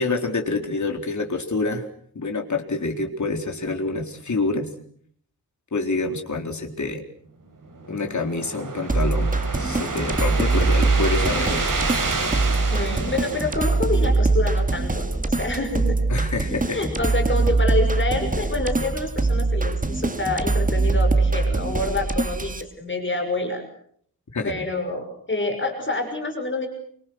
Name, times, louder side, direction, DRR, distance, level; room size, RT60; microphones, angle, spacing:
voice 1, 0.0-1.8 2.1-4.7 5.7-7.0 7.9-9.3 9.6-11.7 16.1-16.8 24.3-24.7, left 3 dB, 50° left, 4 dB, 3.9 m, -27 dB
sound 1, 7.7-14.2, right 3 dB, 60° right, 5.3 m, -29 dB
sound 2, 8.9-22.6, right 3 dB, 20° right, 2.0 m, -22 dB
voice 2, 12.7-16.0 16.7-23.6 24.4-26.7, left 2 dB, 30° left, 4 dB, 6.2 m, -27 dB
29.5 x 25.0 x 6.4 m, 0.62 s
wide cardioid pair, 130°, 37 cm